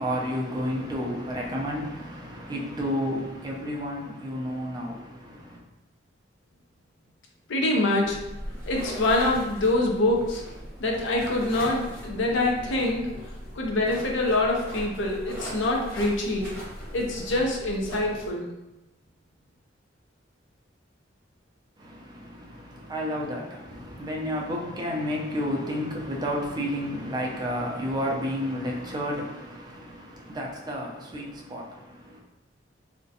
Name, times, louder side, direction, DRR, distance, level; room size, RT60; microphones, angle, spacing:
voice 1, 0.0-5.6 21.8-32.2, equal, 20° right, -2 dB, 0.4 m, -31 dB
voice 2, 7.5-8.2 8.7-10.4 10.8-13.1 13.5-16.5 16.9-18.5, left 2 dB, 75° left, 0 dB, 0.5 m, -25 dB
sound 1, 8.0-18.3, equal, 10° left, 1.3 m, -39 dB
2.4 x 2.1 x 2.6 m, 0.97 s
head